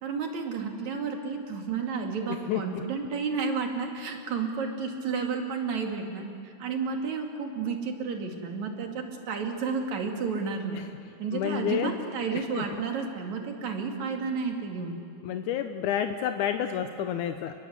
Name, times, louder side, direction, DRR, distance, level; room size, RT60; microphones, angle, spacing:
voice 1, 0.0-6.3 6.6-10.8 11.2-15.0, right 5 dB, 65° right, 2 dB, 3.6 m, -31 dB
voice 2, 2.3-2.8 10.7-10.9 11.3-11.9 12.3-12.7 15.2-17.5, left 10 dB, 85° left, 7 dB, 2.3 m, -30 dB
29.5 x 20.5 x 8.1 m, 2.4 s
omnidirectional pair, 3.5 m